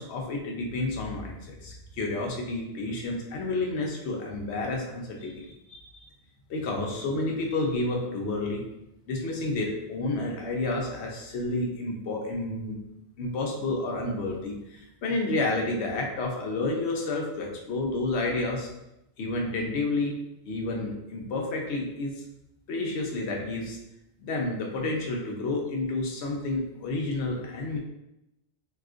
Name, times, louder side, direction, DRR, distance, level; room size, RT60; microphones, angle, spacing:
voice 1, 0.0-6.0 6.5-8.6 9.1-12.8 13.2-18.7 19.2-20.2 20.4-22.1 22.7-23.8 24.2-27.8, left 2 dB, 75° left, 0 dB, 0.9 m, -30 dB
3.7 x 2.4 x 2.4 m, 0.87 s
omnidirectional pair, 1.2 m